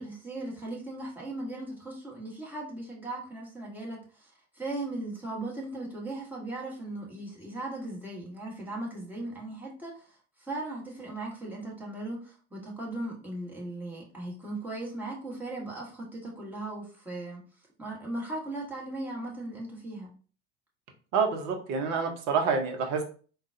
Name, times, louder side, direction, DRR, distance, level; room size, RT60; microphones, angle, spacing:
voice 1, 0.0-17.4 17.8-20.1, right 2 dB, 5° right, -4 dB, 1.3 m, -38 dB
voice 2, 21.1-23.0, right 5 dB, 50° right, 5 dB, 0.8 m, -27 dB
3.7 x 2.3 x 2.6 m, 0.39 s
hypercardioid pair, 70°, 35 cm